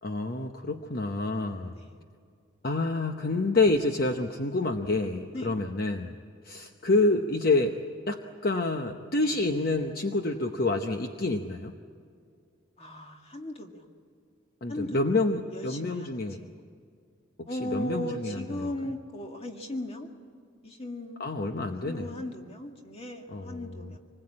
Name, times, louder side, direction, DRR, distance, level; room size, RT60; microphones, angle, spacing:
voice 1, 0.0-1.7 2.6-6.1 6.4-7.8 8.1-11.7 14.6-16.4 17.4-18.7 21.2-22.2 23.3-23.9, left 2 dB, 45° left, 5 dB, 0.9 m, -28 dB
voice 2, 12.8-13.8 14.7-15.0 15.5-16.5 17.5-20.1 20.6-21.2 21.8-24.0, left 1 dB, 30° left, 3 dB, 1.9 m, -37 dB
26.0 x 20.5 x 8.7 m, 2.2 s
head